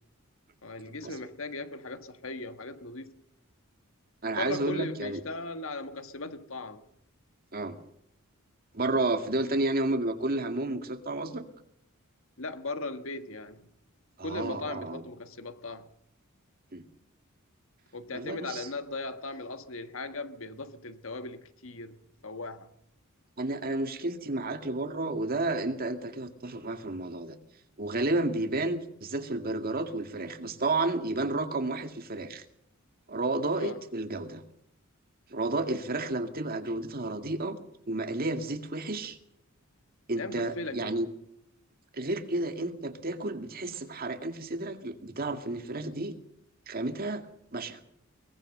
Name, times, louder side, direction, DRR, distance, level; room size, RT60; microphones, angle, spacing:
voice 1, 0.6-3.1 4.3-6.8 12.4-13.7 14.2-15.9 17.9-22.0 22.2-22.7 33.6-33.8 40.2-41.0, left 2 dB, 65° left, 1.5 m, -38 dB
voice 2, 4.2-5.2 7.5-7.8 8.7-11.4 14.2-15.0 16.7-16.8 18.1-18.7 23.4-27.4 27.8-32.4 33.1-34.4 35.3-37.6 37.9-39.2 40.1-41.1 41.9-46.1 46.7-47.3 47.5-47.8, right 2 dB, 45° right, 2.1 m, -31 dB
23.0 x 19.0 x 6.7 m
head